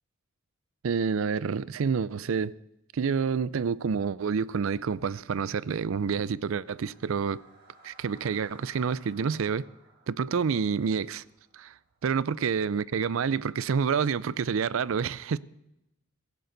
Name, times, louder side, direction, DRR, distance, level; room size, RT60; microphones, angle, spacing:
voice 1, 0.8-2.5 2.9-7.4 7.8-9.7 10.1-11.2 11.5-11.7 12.0-15.4, right 6 dB, 65° right, 0.4 m, -28 dB
sound 1, 6.4-12.5, right 2 dB, 50° right, 5.0 m, -59 dB
16.0 x 16.0 x 3.9 m
head